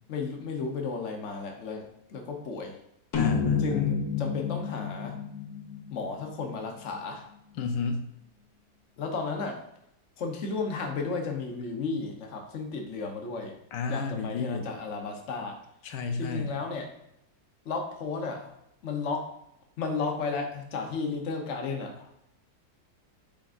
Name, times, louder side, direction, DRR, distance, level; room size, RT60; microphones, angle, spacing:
voice 1, 0.1-2.7 3.6-5.2 5.9-7.2 9.0-9.6 10.2-13.6 13.9-15.6 16.2-16.9 17.6-18.5 18.8-19.3 19.8-22.1, left 4 dB, 50° left, 2 dB, 1.2 m, -33 dB
voice 2, 3.1-3.8 7.6-8.0 13.7-14.7 15.8-16.5, left 4 dB, 90° left, 5 dB, 1.4 m, -31 dB
sound 1, 3.1-6.6, left 6 dB, 65° left, 1.5 m, -30 dB
10.5 x 3.7 x 2.6 m, 0.78 s
omnidirectional pair, 1.8 m